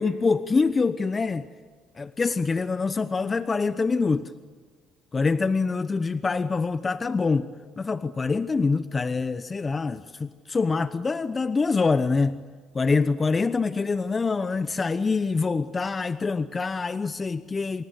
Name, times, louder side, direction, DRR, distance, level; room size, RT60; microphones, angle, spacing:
voice 1, 0.0-1.5 2.0-4.3 5.1-7.5 7.8-12.4 12.7-17.8, left 4 dB, 30° left, 1.0 m, -25 dB
28.0 x 26.0 x 8.1 m
supercardioid pair, 65°, 0 cm